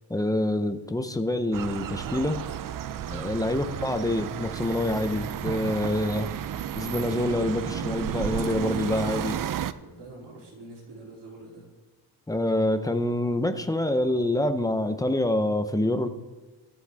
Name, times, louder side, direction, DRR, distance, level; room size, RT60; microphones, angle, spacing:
voice 1, 0.1-2.4 3.1-6.3 6.8-9.4 12.3-16.1, left 1 dB, 10° left, 8 dB, 0.6 m, -26 dB
sound 1, 1.5-9.7, right 10 dB, 55° right, 0.5 m, -32 dB
voice 2, 9.8-11.7, right 2 dB, 75° right, -2 dB, 3.4 m, -45 dB
22.5 x 7.5 x 3.5 m, 1.2 s
wide cardioid pair, 170°, 41 cm